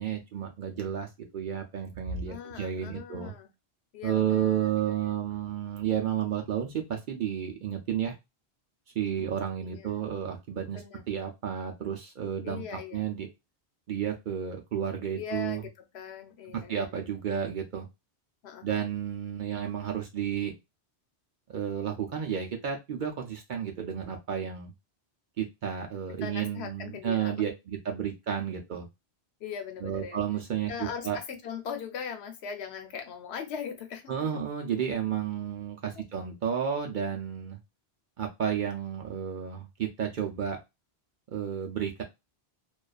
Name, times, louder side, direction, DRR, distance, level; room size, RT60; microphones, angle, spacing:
voice 1, 0.0-3.3 4.0-8.2 8.9-12.6 12.9-13.3 13.9-15.6 16.5-17.9 18.6-20.5 21.5-24.7 25.4-28.9 29.8-31.2 34.1-37.6 38.2-40.6 41.3-42.0, right 9 dB, 60° right, 2 dB, 0.6 m, -32 dB
voice 2, 2.3-3.5 3.9-5.1 9.2-9.3 9.6-9.9 10.7-11.0 12.4-13.0 15.0-17.1 18.4-18.9 26.2-27.3 29.4-30.2 30.7-34.3 36.0-36.1, left 7 dB, 75° left, 6 dB, 0.9 m, -40 dB
2.4 x 2.2 x 2.3 m, 0.22 s
omnidirectional pair, 1.1 m